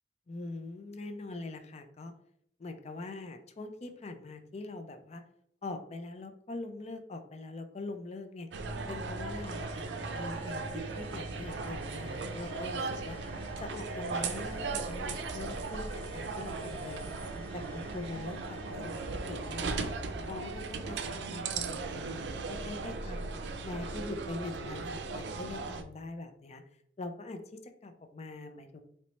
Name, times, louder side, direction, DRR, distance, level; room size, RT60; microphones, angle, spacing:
voice 1, 0.3-2.1 2.6-5.2 5.6-8.5 8.9-13.2 13.6-17.2 17.5-19.9 20.3-23.3 23.6-26.6 27.0-28.8, left 2 dB, 40° left, 7 dB, 0.4 m, -43 dB
sound 1, 8.5-25.8, right 4 dB, 80° right, 0.4 m, -37 dB
sound 2, 8.6-14.9, right 1 dB, 20° right, 0.4 m, -47 dB
sound 3, 9.2-23.7, right 1 dB, 5° left, 1.3 m, -56 dB
4.2 x 3.1 x 3.1 m, 0.68 s
head